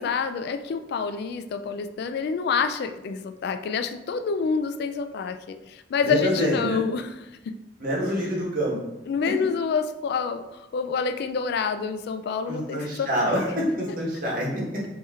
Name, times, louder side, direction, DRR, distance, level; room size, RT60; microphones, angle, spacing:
voice 1, 0.0-7.5 9.1-10.5 10.7-13.3, left 5 dB, 60° left, 10 dB, 0.3 m, -27 dB
voice 2, 6.0-6.8 7.8-8.8 12.5-14.6, equal, 50° right, -3 dB, 1.3 m, -26 dB
4.1 x 2.9 x 3.6 m, 0.99 s
head